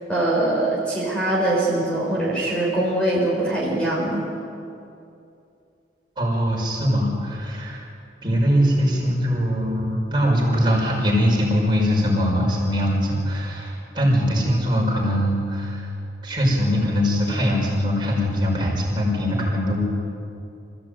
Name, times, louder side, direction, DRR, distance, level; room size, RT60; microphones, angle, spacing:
voice 1, 0.1-4.2, right 1 dB, 5° left, -5 dB, 4.4 m, -22 dB
voice 2, 6.2-7.9 8.2-15.9 16.2-19.8, equal, 25° right, -3 dB, 6.0 m, -21 dB
27.0 x 15.5 x 9.2 m, 2.6 s
head